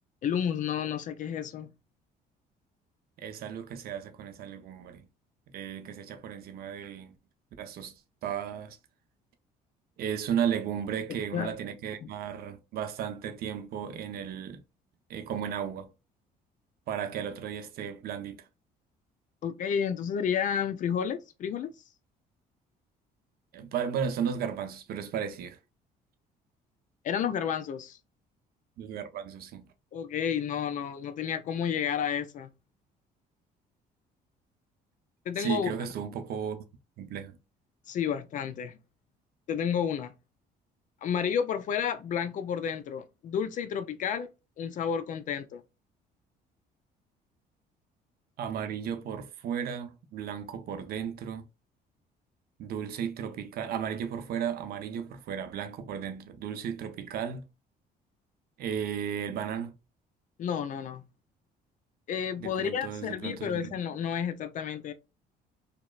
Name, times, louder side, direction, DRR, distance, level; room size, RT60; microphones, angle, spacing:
voice 1, 0.2-1.7 11.1-11.5 12.0-12.1 19.4-21.7 27.0-28.0 29.9-32.5 35.3-35.7 37.9-38.8 39.5-40.1 41.0-44.3 44.6-45.6 60.4-61.0 62.1-64.9, left 8 dB, 50° left, 0.4 m, -31 dB
voice 2, 3.2-5.1 5.5-7.2 7.6-8.8 10.0-14.6 15.1-15.9 16.9-18.4 23.5-25.6 28.8-29.7 35.4-36.6 37.0-37.4 48.4-51.4 52.6-57.5 58.6-59.7 62.4-63.7, right 8 dB, 65° right, 0.6 m, -34 dB
2.9 x 2.0 x 2.2 m
cardioid pair, 110°, 17 cm